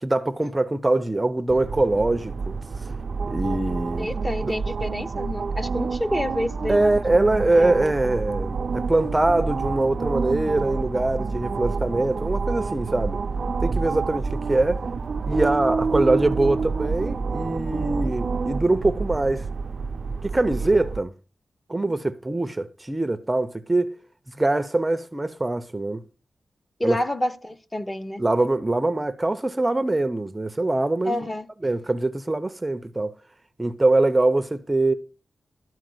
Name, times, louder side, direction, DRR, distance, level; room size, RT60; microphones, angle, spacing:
voice 1, 0.0-2.6 3.3-4.1 4.4-4.5 6.7-13.2 13.6-14.8 15.3-19.5 20.2-21.1 21.7-23.9 24.3-26.0 26.8-27.0 28.2-31.2 31.6-33.2 33.6-34.9, right 2 dB, 20° right, 0.7 m, -23 dB
sound 1, 1.5-21.0, right 4 dB, 55° right, 0.5 m, -28 dB
voice 2, 4.0-7.2 7.6-7.7 20.6-20.9 21.8-22.0 26.8-28.2 31.0-31.5, left 1 dB, 15° left, 1.1 m, -29 dB
sound 2, 6.2-19.2, equal, 70° left, 3.2 m, -44 dB
13.0 x 4.7 x 7.8 m
wide cardioid pair, 105°, 0 cm